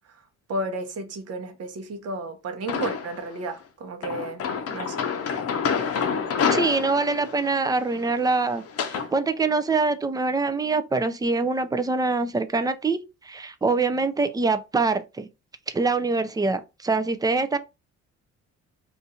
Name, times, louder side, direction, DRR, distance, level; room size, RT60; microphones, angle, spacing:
voice 1, 0.5-4.4 4.7-5.0, right 2 dB, 55° right, 0.9 m, -32 dB
sound 1, 2.7-3.3 4.0-9.1, left 6 dB, 50° left, 0.7 m, -28 dB
voice 2, 6.5-13.0 13.2-15.3 15.7-17.6, right 3 dB, 15° right, 0.4 m, -24 dB
2.5 x 2.5 x 4.1 m
cardioid pair, 90°, 30 cm